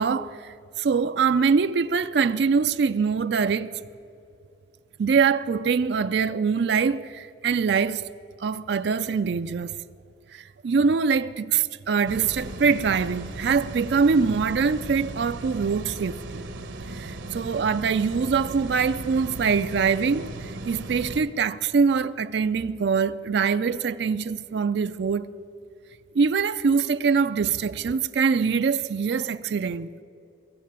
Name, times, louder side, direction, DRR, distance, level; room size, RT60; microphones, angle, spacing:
voice 1, 0.0-3.7 5.0-8.0 8.4-9.8 10.3-16.5 16.9-25.3 26.1-29.9, right 5 dB, 65° right, 0.4 m, -23 dB
sound 1, 12.1-21.2, right 2 dB, 85° right, 1.0 m, -37 dB
22.0 x 7.6 x 8.7 m
head